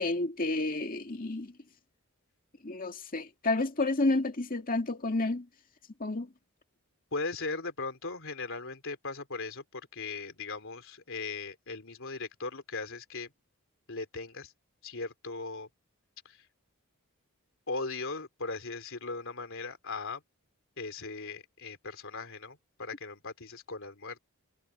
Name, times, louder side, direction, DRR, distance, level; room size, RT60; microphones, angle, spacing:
voice 1, 0.0-1.6 2.6-5.5 6.0-6.3, left 2 dB, 40° left, 2.2 m, -30 dB
voice 2, 7.1-13.3 13.9-14.5 14.8-15.7 16.3-16.5 17.7-20.2 20.8-24.2, left 3 dB, 65° left, 3.5 m, -38 dB
head